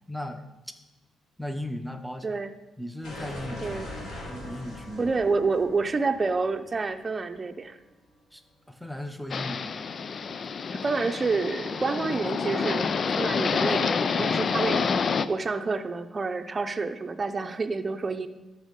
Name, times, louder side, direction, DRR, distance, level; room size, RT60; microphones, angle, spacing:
voice 1, 0.1-0.4 1.4-2.4 2.8-3.8 4.3-5.1 8.3-8.4 8.7-9.8, left 1 dB, ahead, 7 dB, 0.9 m, -36 dB
sound 1, 3.0-7.8, left 1 dB, 85° left, 4.1 m, -41 dB
voice 2, 5.0-7.8 10.8-12.9 13.2-18.3, right 4 dB, 30° right, 8 dB, 0.8 m, -28 dB
sound 2, 9.3-15.3, left 5 dB, 45° left, 0.5 m, -28 dB
13.0 x 5.6 x 5.3 m, 1.0 s
cardioid pair, 90°, 0 cm